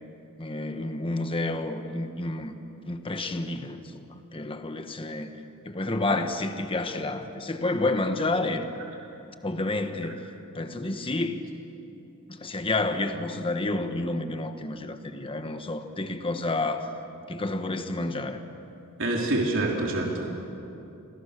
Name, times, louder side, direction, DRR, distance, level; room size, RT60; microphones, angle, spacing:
voice 1, 0.4-2.5 2.9-4.0 4.3-5.3 5.6-8.7 9.3-10.2 10.5-11.4 12.3-16.9 17.3-18.4, left 2 dB, 25° left, 7 dB, 1.3 m, -30 dB
voice 2, 19.0-20.2, right 2 dB, 60° right, -1 dB, 3.4 m, -26 dB
30.0 x 23.0 x 6.7 m, 2.8 s
head